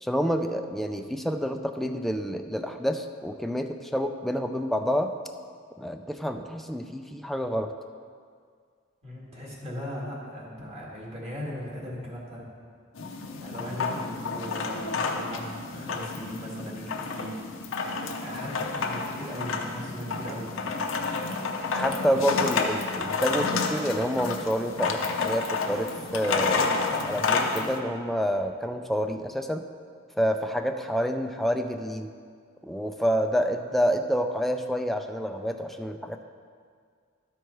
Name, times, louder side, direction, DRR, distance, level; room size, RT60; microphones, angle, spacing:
voice 1, 0.0-5.1 5.8-7.7 21.7-29.7 30.2-32.1 32.6-36.2, equal, ahead, 5 dB, 0.4 m, -28 dB
voice 2, 9.0-12.4 13.4-15.5 15.7-17.4 17.9-20.5, equal, 30° right, -5 dB, 2.2 m, -38 dB
sound 1, 13.0-27.8, left 4 dB, 70° left, 0.7 m, -30 dB
13.0 x 4.7 x 4.6 m, 2.1 s
head